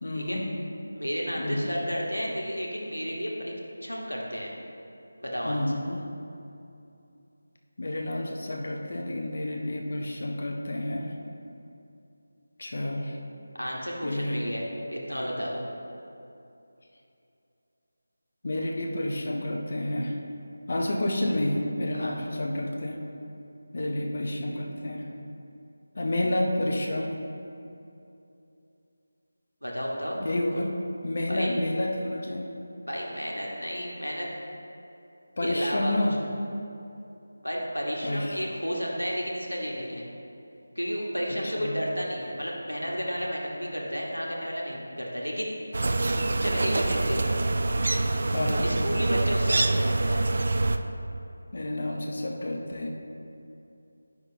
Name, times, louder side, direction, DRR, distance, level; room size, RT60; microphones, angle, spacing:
voice 1, 0.0-0.5 1.4-1.7 5.4-6.0 7.8-11.1 12.6-13.2 14.0-14.5 18.4-20.2 20.7-23.0 23.7-25.1 25.9-27.1 30.2-30.7 31.0-32.5 35.4-36.2 38.0-38.4 41.3-41.8 48.3-48.7 51.5-52.9, left 1 dB, 45° left, 1 dB, 0.7 m, -29 dB
voice 2, 0.9-3.5 3.8-4.5 5.2-5.6 13.6-14.6 14.9-15.7 21.9-22.2 29.6-30.6 31.3-31.5 32.8-34.3 35.4-35.9 37.4-40.0 40.7-45.5 46.4-47.4 48.6-50.2, equal, 90° left, -3 dB, 1.3 m, -32 dB
sound 1, 45.7-50.8, right 2 dB, 45° right, 0.3 m, -25 dB
9.4 x 5.8 x 2.8 m, 2.7 s
figure-of-eight pair, 160°, 0 cm